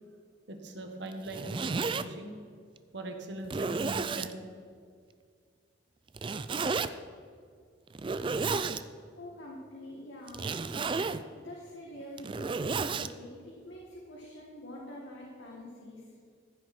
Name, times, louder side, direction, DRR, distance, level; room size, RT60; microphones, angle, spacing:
voice 1, 0.5-2.3 2.9-4.5, right 1 dB, 70° right, 4 dB, 1.5 m, -41 dB
Zipper (clothing), 1.1-2.0 2.8-2.9 3.4-4.3 6.1-6.9 7.9-8.8 10.3-11.2 12.0-13.1, right 4 dB, 25° right, 0.3 m, -32 dB
voice 2, 9.2-10.6 11.4-16.1, left 1 dB, 80° left, -3 dB, 1.9 m, -46 dB
15.0 x 9.4 x 4.3 m, 2.1 s
head